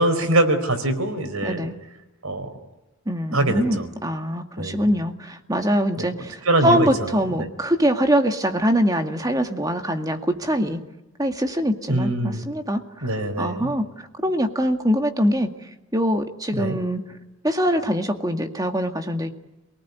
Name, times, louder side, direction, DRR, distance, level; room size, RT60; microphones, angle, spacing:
voice 1, 0.0-1.6 2.2-2.5 3.3-3.6 4.6-4.8 6.0-6.1 6.4-6.9 7.4-7.5 11.9-12.4 13.0-13.7 16.6-16.8, right 1 dB, 80° right, 8 dB, 4.5 m, -22 dB
voice 2, 1.4-1.7 3.1-10.8 11.2-13.1 13.4-13.9 14.2-17.0 17.4-19.3, equal, 15° right, 5 dB, 2.1 m, -23 dB
28.0 x 19.5 x 9.5 m, 1.0 s
head